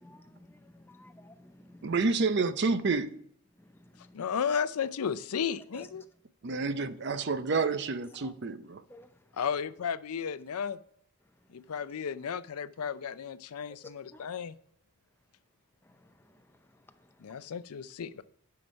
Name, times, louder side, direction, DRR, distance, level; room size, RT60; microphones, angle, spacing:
voice 1, 0.0-2.0 3.6-4.2 5.7-6.0 8.2-8.3 8.9-9.4 11.2-11.6 13.7-14.2 15.8-17.5, left 2 dB, 10° left, 0.6 m, -55 dB
voice 2, 1.8-3.1 6.4-8.8, right 4 dB, 50° right, 0.5 m, -29 dB
voice 3, 4.1-6.0 9.4-10.8 11.5-14.5 17.2-18.2, left 7 dB, 80° left, 0.5 m, -34 dB
11.0 x 5.9 x 5.2 m
head